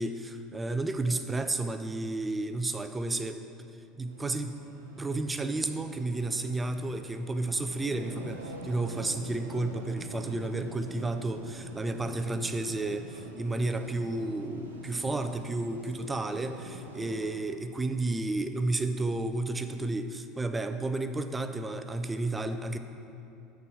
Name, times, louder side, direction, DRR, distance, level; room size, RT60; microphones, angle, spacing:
voice 1, 0.0-3.4 4.0-4.6 5.0-22.8, right 2 dB, 15° right, 8 dB, 0.5 m, -32 dB
sound 1, 4.1-17.3, right 1 dB, 85° right, 0.6 m, -45 dB
6.8 x 4.7 x 5.7 m, 2.7 s
figure-of-eight pair, 70°, 0 cm